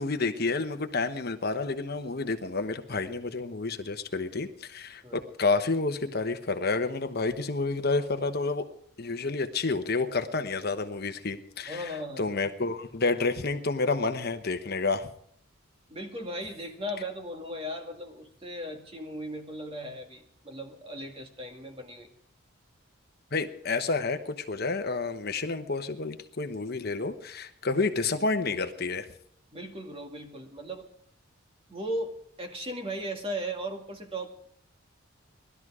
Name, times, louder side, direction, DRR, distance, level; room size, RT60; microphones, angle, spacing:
voice 1, 0.0-8.7 9.0-15.1 23.3-29.0, left 3 dB, 50° left, 7 dB, 1.1 m, -29 dB
voice 2, 11.7-12.3 15.9-22.1 29.5-30.9 31.7-34.3, equal, 25° right, 3 dB, 2.1 m, -37 dB
19.5 x 12.5 x 4.9 m, 0.64 s
head